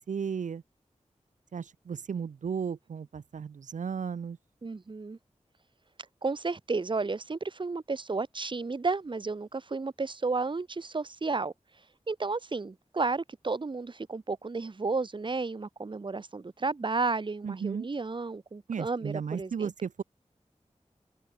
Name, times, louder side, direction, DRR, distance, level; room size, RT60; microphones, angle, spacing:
voice 1, 0.1-0.6 1.5-4.4 17.4-17.9 18.7-20.0, right 6 dB, 85° right, 0.5 m, -34 dB
voice 2, 4.6-5.2 6.2-11.5 12.1-19.7, right 3 dB, 40° right, 0.7 m, -32 dB
open air
wide cardioid pair, 50°, 13 cm